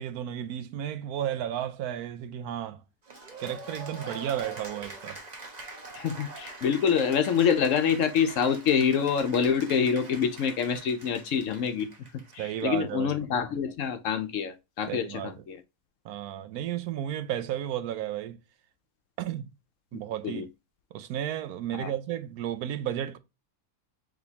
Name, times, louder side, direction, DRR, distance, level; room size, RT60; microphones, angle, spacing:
voice 1, 0.0-2.8 3.4-5.2 12.4-13.2 14.9-15.3 16.0-18.4 19.2-19.5 19.9-20.5 20.9-23.2, right 11 dB, 80° right, 1.1 m, -33 dB
Cheering / Applause, 3.1-12.6, right 2 dB, 30° right, 1.0 m, -44 dB
voice 2, 5.9-11.9 12.3-15.6 20.2-20.5 21.7-21.9, left 7 dB, 65° left, 0.9 m, -26 dB
5.0 x 3.5 x 2.8 m
omnidirectional pair, 1.6 m